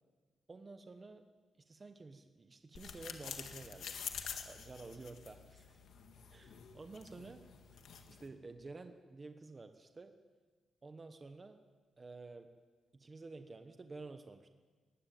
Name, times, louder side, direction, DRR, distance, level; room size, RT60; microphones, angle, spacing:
voice 1, 0.5-1.2 1.7-3.9 4.2-5.8 6.3-7.4 8.1-10.1 10.8-11.6 12.0-12.5 12.9-14.5, right 3 dB, 20° right, 7 dB, 0.9 m, -51 dB
sound 1, 2.8-8.3, left 7 dB, 60° left, 1.8 m, -48 dB
18.5 x 15.5 x 9.3 m, 1.4 s
wide cardioid pair, 175°, 0 cm